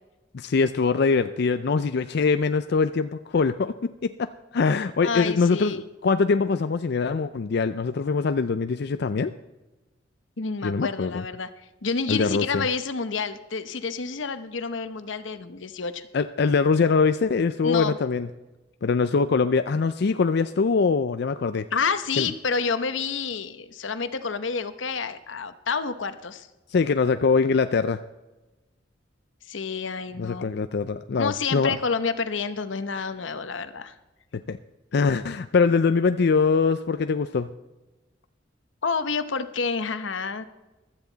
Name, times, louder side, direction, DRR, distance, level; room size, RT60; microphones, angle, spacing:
voice 1, 0.3-9.3 10.6-11.2 12.1-12.6 16.1-18.3 18.8-21.6 22.2-22.3 26.7-28.0 30.2-31.7 34.5-34.6 34.9-37.5, left 4 dB, 60° left, 10 dB, 0.4 m, -23 dB
voice 2, 5.0-5.8 10.4-11.5 11.8-16.1 17.6-18.0 21.7-26.5 29.5-30.5 31.2-33.9 38.8-40.4, left 5 dB, 85° left, 11 dB, 0.9 m, -29 dB
15.5 x 12.5 x 4.0 m, 1.1 s
head